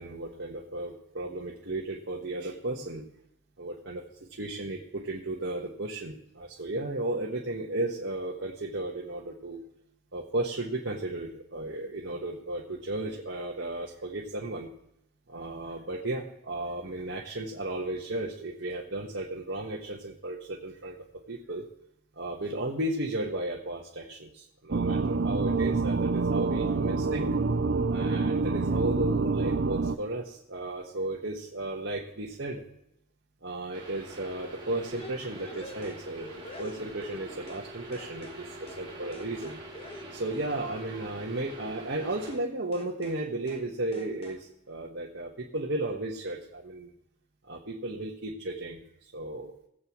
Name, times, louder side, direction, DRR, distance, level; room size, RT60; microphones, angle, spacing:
voice 1, 0.0-3.1 3.6-4.0 4.3-9.6 10.1-14.7 15.3-21.0 21.3-21.7 22.1-27.3 27.9-32.6 33.4-39.6 40.1-46.9 47.4-49.5, right 2 dB, 80° right, -2 dB, 1.5 m, -34 dB
sound 1, 24.7-30.0, right 4 dB, 65° right, 0.6 m, -27 dB
sound 2, 33.7-42.3, right 1 dB, 25° right, 2.9 m, -45 dB
sound 3, 34.9-37.7 37.9-38.4 38.7-38.9 39.1-41.2 42.3-42.5 42.7-43.2 43.5-43.7 43.9-44.4, left 1 dB, 30° left, 1.2 m, -46 dB
21.0 x 7.7 x 3.2 m, 0.77 s
head